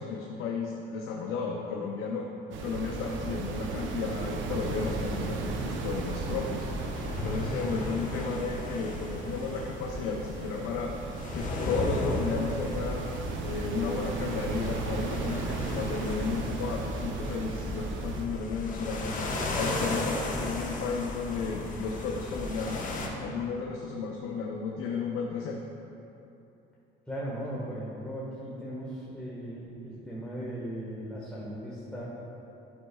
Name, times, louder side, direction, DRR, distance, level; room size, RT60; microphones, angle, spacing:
voice 1, 0.0-2.3 2.6-13.1 13.4-25.7, left 4 dB, 75° left, -1 dB, 0.6 m, -34 dB
sound 1, 2.5-18.3, right 4 dB, 70° right, 0.7 m, -36 dB
sound 2, 4.6-23.1, left 1 dB, 40° left, 1.0 m, -36 dB
voice 2, 27.1-32.0, equal, 5° left, -8 dB, 1.4 m, -37 dB
9.8 x 6.4 x 2.3 m, 2.9 s
supercardioid pair, 85°, 21 cm